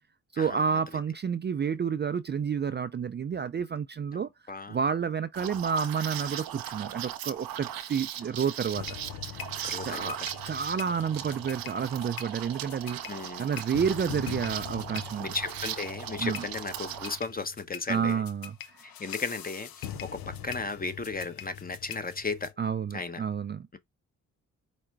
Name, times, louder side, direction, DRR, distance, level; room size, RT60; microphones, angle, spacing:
voice 1, 0.3-4.3 4.7-8.8 9.8-10.2 10.4-13.0 13.4-15.3 16.2-16.4 17.9-18.8 22.6-23.7, right 6 dB, 30° right, 0.4 m, -30 dB
Liquid, 5.3-17.2, right 11 dB, 85° right, 0.6 m, -38 dB
sound 1, 8.7-22.5, left 10 dB, 80° left, 0.6 m, -42 dB
voice 2, 9.6-10.3 13.1-13.5 15.2-18.2 18.8-22.5 22.9-23.2, left 3 dB, 25° left, 0.9 m, -35 dB
4.9 x 2.2 x 4.6 m
supercardioid pair, 45°, 35 cm